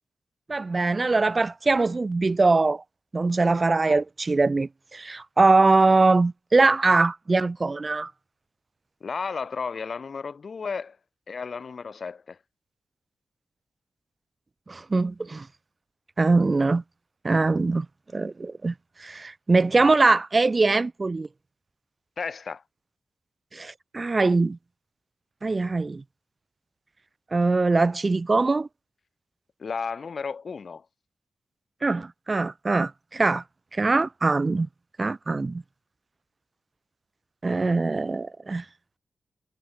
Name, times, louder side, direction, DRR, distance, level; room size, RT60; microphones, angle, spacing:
voice 1, 0.5-2.8 3.1-8.1 14.7-15.5 16.2-16.8 17.2-17.9 18.1-18.7 19.0-21.3 23.5-24.6 25.4-26.0 27.3-28.7 31.8-33.4 33.7-34.7 35.0-35.6 37.4-38.6, right 3 dB, 40° right, 0.6 m, -22 dB
voice 2, 9.0-11.0 11.3-12.4 22.2-22.6 29.6-30.8, left 5 dB, 60° left, 0.5 m, -33 dB
supercardioid pair, 40°, 0 cm